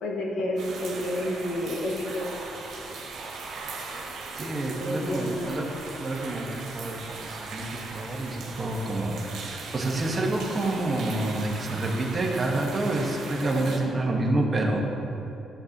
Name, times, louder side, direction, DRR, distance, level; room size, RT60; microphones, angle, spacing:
voice 1, 0.0-2.3 4.8-5.5, left 1 dB, 70° left, -2 dB, 1.8 m, -30 dB
sound 1, 0.6-13.8, right 3 dB, 75° right, 1.6 m, -39 dB
voice 2, 4.4-5.7 6.0-14.8, right 2 dB, 30° right, -1 dB, 1.4 m, -28 dB
12.0 x 8.0 x 3.0 m, 2.9 s
cardioid pair, 90°, 0 cm